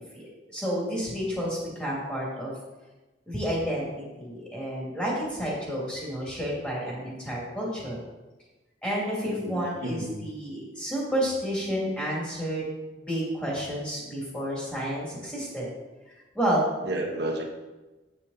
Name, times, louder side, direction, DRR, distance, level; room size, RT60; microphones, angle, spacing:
voice 1, 0.0-2.5 3.3-8.0 8.8-12.7 13.0-15.7 16.3-16.7, equal, 5° left, -5 dB, 2.7 m, -30 dB
voice 2, 9.2-10.1 16.8-17.4, right 1 dB, 65° right, 0 dB, 1.5 m, -31 dB
8.5 x 6.7 x 4.2 m, 1.1 s
head